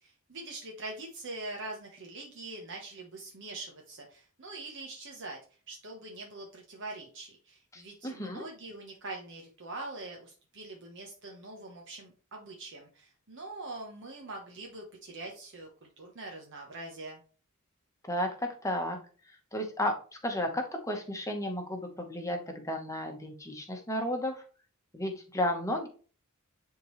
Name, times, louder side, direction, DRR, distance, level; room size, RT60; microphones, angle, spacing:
voice 1, 0.0-5.4 5.7-15.7 16.0-17.2, right 2 dB, 60° right, 1 dB, 1.2 m, -43 dB
voice 2, 7.7-8.4 18.1-19.0 19.5-20.0 20.2-24.4 24.9-25.9, left 1 dB, 15° left, 4 dB, 1.1 m, -33 dB
10.0 x 3.8 x 3.2 m, 0.39 s
head